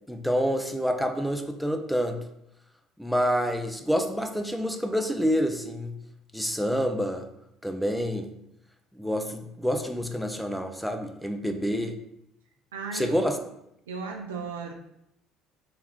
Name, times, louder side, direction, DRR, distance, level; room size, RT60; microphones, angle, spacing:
voice 1, 0.1-2.2 3.0-6.0 6.3-7.3 7.6-8.3 8.9-12.0 12.9-13.4, equal, ahead, 6 dB, 0.4 m, -27 dB
voice 2, 12.7-13.3 13.9-14.7, right 4 dB, 70° right, 2 dB, 0.3 m, -35 dB
3.2 x 3.0 x 3.5 m, 0.79 s
figure-of-eight pair, 60°, 0 cm